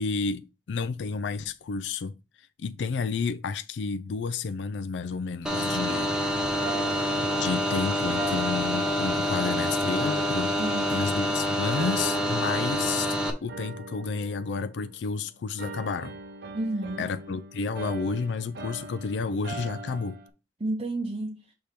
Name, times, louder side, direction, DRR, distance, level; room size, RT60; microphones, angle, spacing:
voice 1, 0.0-2.1 2.6-6.1 7.4-10.6 10.9-13.1 13.4-16.1 17.0-20.2, left 4 dB, 85° left, 0.4 m, -31 dB
sound 1, 5.4-13.3, equal, 5° right, 1.1 m, -27 dB
sound 2, 6.6-9.5 10.0-11.3 11.8-13.1 13.5-15.2 15.6-20.3, right 3 dB, 65° right, 0.7 m, -41 dB
voice 2, 10.6-11.0 16.5-17.1 20.6-21.5, right 2 dB, 35° right, 0.7 m, -31 dB
6.6 x 3.4 x 4.3 m
head